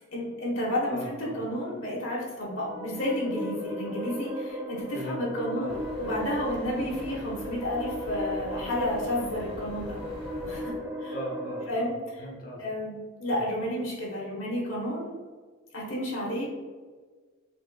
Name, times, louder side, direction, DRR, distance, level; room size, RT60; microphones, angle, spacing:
voice 1, 0.1-10.0 10.5-10.7 11.0-11.1 11.7-12.2 12.6-15.2 15.7-16.4, left 1 dB, 70° left, -4 dB, 1.1 m, -31 dB
voice 2, 0.9-1.4 4.9-5.2 5.5-5.7 11.1-12.6 13.3-13.4, left 1 dB, 45° left, -1 dB, 0.8 m, -39 dB
sound 1, 2.3-11.7, equal, 15° right, 0.3 m, -36 dB
sound 2, 5.7-10.7, equal, 90° left, 1.5 m, -43 dB
4.1 x 2.8 x 2.2 m, 1.4 s
head